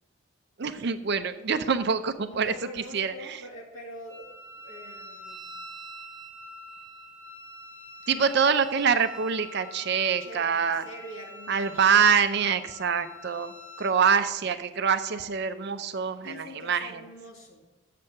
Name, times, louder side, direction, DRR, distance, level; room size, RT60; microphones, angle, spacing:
voice 1, 0.6-3.4 8.1-10.8 11.5-13.5 13.8-17.0, right 6 dB, 50° right, 10 dB, 0.5 m, -25 dB
voice 2, 2.3-5.5 8.2-8.3 10.2-12.0 16.2-17.6, left 1 dB, 75° left, -1 dB, 2.1 m, -44 dB
Wind instrument woodwind instrument, 4.1-14.0, equal, 20° right, 2.3 m, -45 dB
7.5 x 6.0 x 6.6 m, 1.1 s
head